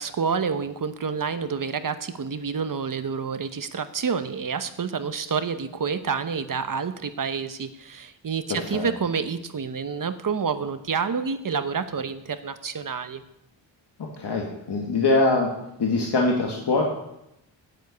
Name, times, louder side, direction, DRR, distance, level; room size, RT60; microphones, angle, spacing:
voice 1, 0.0-13.2, right 6 dB, 45° right, 10 dB, 1.0 m, -28 dB
voice 2, 8.5-8.9 14.2-15.5 15.8-16.8, left 3 dB, 60° left, 0 dB, 2.0 m, -23 dB
9.2 x 9.2 x 8.4 m, 0.82 s
wide cardioid pair, 120°, 45 cm